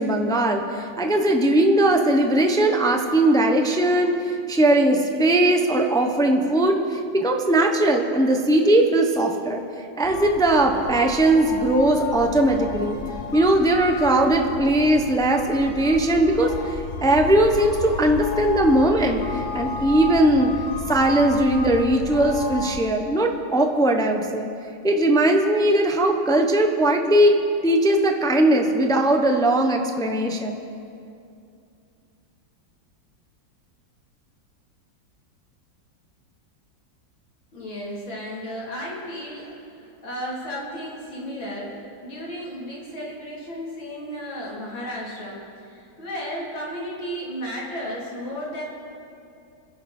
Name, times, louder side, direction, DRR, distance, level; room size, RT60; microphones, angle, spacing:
voice 1, 0.0-9.6 10.0-13.0 13.3-20.5 20.9-24.5 24.8-27.3 27.6-30.6, right 1 dB, 5° left, 3 dB, 0.7 m, -19 dB
sound 1, 10.0-22.8, left 4 dB, 45° left, 1.3 m, -32 dB
voice 2, 37.5-48.6, equal, 85° left, -5 dB, 4.4 m, -34 dB
28.0 x 11.0 x 4.5 m, 2.5 s
omnidirectional pair, 2.1 m